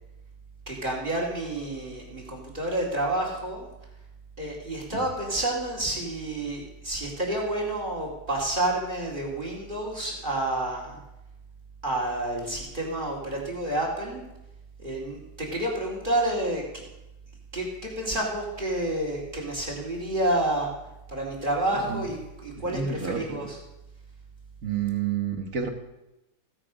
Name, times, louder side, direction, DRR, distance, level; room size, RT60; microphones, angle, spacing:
voice 1, 0.7-3.7 4.4-11.0 11.8-14.2 14.8-16.8 17.5-20.7 21.1-23.6, right 1 dB, 30° right, -2 dB, 2.7 m, -29 dB
voice 2, 21.7-22.1 22.6-23.5 24.6-25.7, right 7 dB, 55° right, 4 dB, 1.7 m, -30 dB
16.0 x 7.5 x 5.1 m, 0.95 s
omnidirectional pair, 1.7 m